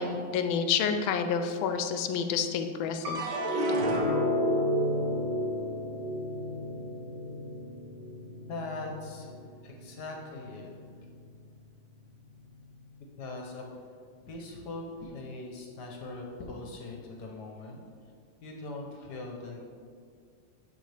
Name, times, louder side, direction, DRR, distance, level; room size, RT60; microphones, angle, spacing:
voice 1, 0.0-3.2, left 6 dB, 85° left, 7 dB, 1.4 m, -29 dB
sound 1, 3.0-9.5 9.9-10.6, equal, 60° right, 1.6 m, -31 dB
voice 2, 8.5-9.3 9.6-10.7 13.2-13.7 14.3-17.8 18.4-19.6, left 2 dB, 60° left, 0 dB, 1.3 m, -41 dB
12.0 x 4.2 x 3.3 m, 2.2 s
omnidirectional pair, 2.2 m